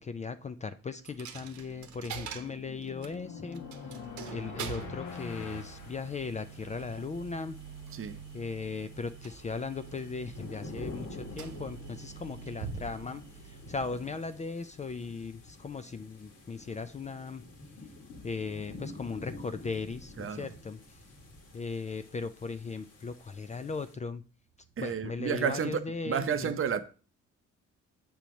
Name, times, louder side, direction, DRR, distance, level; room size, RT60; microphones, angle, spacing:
voice 1, 0.0-3.6 4.3-7.6 8.3-17.4 18.2-21.0 21.5-24.2 24.8-26.5, left 4 dB, 25° left, 0.4 m, -38 dB
Coin (dropping), 1.1-14.8, right 7 dB, 70° right, 0.9 m, -45 dB
sound 1, 1.9-6.8, left 5 dB, 75° left, 1.2 m, -44 dB
sound 2, 5.1-23.9, left 3 dB, 55° left, 1.6 m, -49 dB
voice 2, 20.2-20.5 24.8-26.8, right 7 dB, 45° right, 0.7 m, -31 dB
7.0 x 3.0 x 5.1 m
cardioid pair, 90°, 30 cm